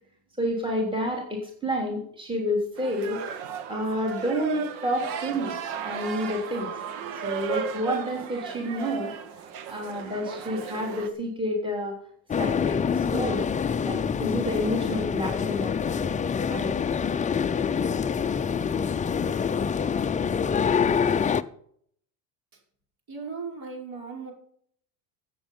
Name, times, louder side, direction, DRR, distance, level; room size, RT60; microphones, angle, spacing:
voice 1, 0.4-3.2 3.7-5.5 5.8-6.7 7.1-9.1 9.4-12.0 12.4-13.5 13.8-16.2 16.5-16.8, equal, 10° right, 0 dB, 3.3 m, -29 dB
sound 1, 2.8-11.1, right 8 dB, 75° right, 1.7 m, -35 dB
sound 2, 12.3-21.4, left 6 dB, 15° left, 0.5 m, -26 dB
voice 2, 23.1-24.3, right 5 dB, 45° right, 1 dB, 5.4 m, -37 dB
15.0 x 8.1 x 5.5 m, 0.63 s
supercardioid pair, 100°, 48 cm